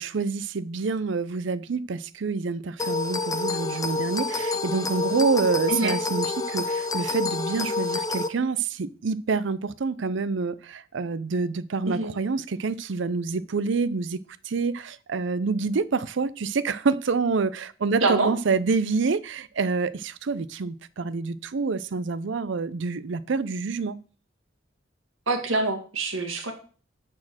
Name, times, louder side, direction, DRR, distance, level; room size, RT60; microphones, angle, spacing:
voice 1, 0.0-14.2 14.5-24.0, right 4 dB, 65° right, 0.5 m, -27 dB
sound 1, 2.8-8.3, left 3 dB, 20° left, 0.5 m, -28 dB
voice 2, 18.0-18.3 25.3-26.5, right 3 dB, 90° right, 1.8 m, -25 dB
9.6 x 4.4 x 6.2 m
head